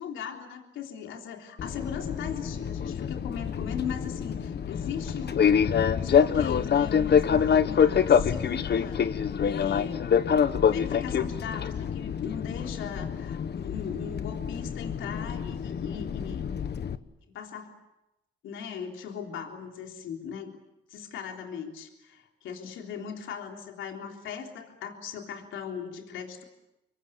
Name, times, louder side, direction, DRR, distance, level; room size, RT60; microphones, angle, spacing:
voice 1, 0.0-10.2 10.6-16.5 17.3-17.7 18.4-20.5 20.9-26.4, left 7 dB, 90° left, 3 dB, 3.5 m, -39 dB
Fixed-wing aircraft airplane, 1.6-17.0, left 7 dB, 60° left, 1.3 m, -26 dB
27.5 x 22.5 x 8.5 m, 0.93 s
cardioid pair, 70°, 20 cm